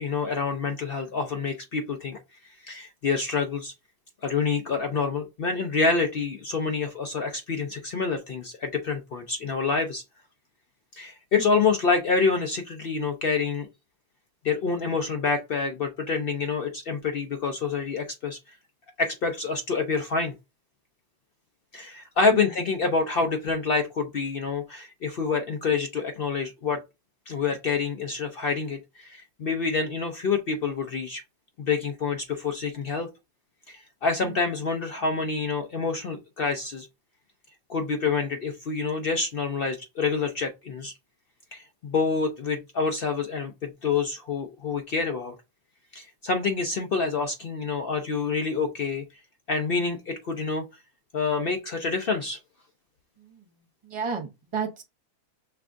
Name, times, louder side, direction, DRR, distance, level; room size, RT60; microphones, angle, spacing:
voice 1, 0.0-2.2 2.6-3.7 4.2-10.0 10.9-13.7 14.4-18.4 19.0-20.3 21.7-26.8 27.3-31.2 31.6-33.1 33.7-36.9 37.7-40.9 41.5-45.3 45.9-49.0 49.5-50.6 51.1-52.4, left 4 dB, 65° left, 0.5 m, -27 dB
voice 2, 53.8-54.8, right 6 dB, 50° right, 0.3 m, -33 dB
5.7 x 3.5 x 2.5 m
omnidirectional pair, 1.6 m